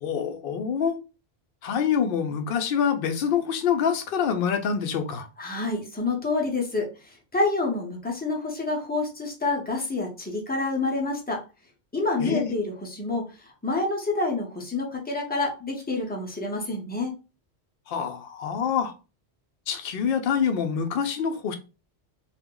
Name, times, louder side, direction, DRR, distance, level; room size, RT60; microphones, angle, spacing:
voice 1, 0.0-1.0 1.6-5.3 12.2-12.5 17.9-18.9 19.7-21.5, left 7 dB, 65° left, 0.7 m, -26 dB
voice 2, 5.4-11.4 11.9-17.1, left 3 dB, 10° left, 0.5 m, -28 dB
2.4 x 2.0 x 3.6 m
omnidirectional pair, 1.1 m